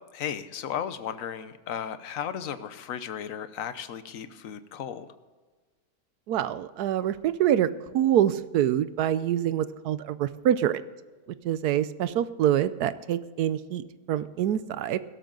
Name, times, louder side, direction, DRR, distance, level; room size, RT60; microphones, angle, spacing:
voice 1, 0.1-5.1, left 8 dB, 60° left, 12 dB, 1.1 m, -35 dB
voice 2, 6.3-10.8 11.4-13.8 14.1-15.0, right 11 dB, 70° right, 15 dB, 1.1 m, -25 dB
16.5 x 13.0 x 3.9 m, 1.3 s
omnidirectional pair, 1.9 m